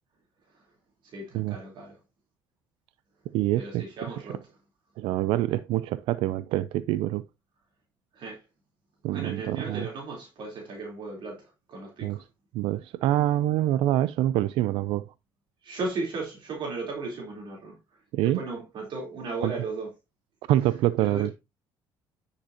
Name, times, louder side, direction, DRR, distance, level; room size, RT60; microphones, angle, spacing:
voice 1, 1.1-1.9 3.6-4.4 8.1-8.4 9.1-11.4 11.7-12.2 15.6-17.7 18.2-19.9 21.0-21.3, right 3 dB, 60° right, 3.6 m, -35 dB
voice 2, 3.3-4.1 5.0-7.2 9.0-9.9 12.0-12.2 12.5-15.0 18.1-18.4 19.4-19.5 20.5-21.4, right 14 dB, 80° right, 0.4 m, -26 dB
9.9 x 6.7 x 2.8 m
supercardioid pair, 85°, 9 cm